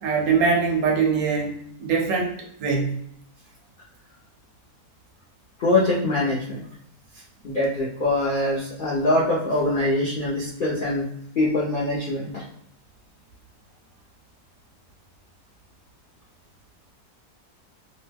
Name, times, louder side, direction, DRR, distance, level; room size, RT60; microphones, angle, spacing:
voice 1, 0.0-3.0, right 5 dB, 70° right, 1 dB, 0.9 m, -23 dB
voice 2, 5.6-6.6 7.4-11.1 11.4-12.4, left 2 dB, 65° left, -6 dB, 0.5 m, -23 dB
2.9 x 2.1 x 3.4 m, 0.74 s
omnidirectional pair, 1.8 m